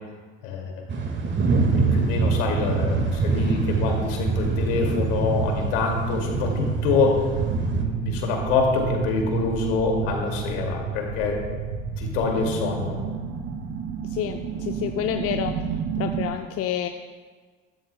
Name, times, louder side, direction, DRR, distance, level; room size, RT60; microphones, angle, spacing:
voice 1, 0.4-0.8 1.7-7.2 7.7-11.4 12.0-13.0, left 4 dB, 80° left, 1 dB, 2.3 m, -26 dB
sound 1, 0.9-7.8, right 4 dB, 40° right, 1.7 m, -25 dB
sound 2, 1.3-16.3, right 5 dB, 60° right, 1.9 m, -30 dB
voice 2, 14.1-15.5 16.0-16.9, left 10 dB, 50° left, 5 dB, 0.7 m, -28 dB
13.5 x 13.0 x 2.2 m, 1.5 s
hypercardioid pair, 65°, 29 cm